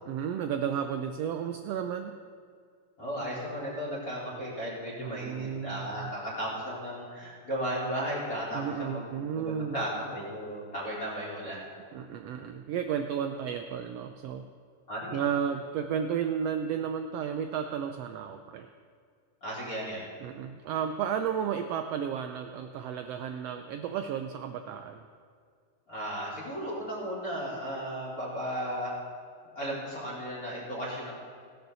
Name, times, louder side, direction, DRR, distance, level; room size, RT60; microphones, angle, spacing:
voice 1, 0.1-2.2 5.0-6.1 8.5-9.8 11.9-14.5 15.1-18.7 20.2-25.0, right 8 dB, 85° right, 6 dB, 1.4 m, -33 dB
voice 2, 3.0-11.7 14.9-15.2 19.4-20.0 25.9-28.9 29.5-31.1, equal, 25° left, -5 dB, 4.6 m, -35 dB
17.5 x 12.0 x 4.0 m, 2.1 s
omnidirectional pair, 3.5 m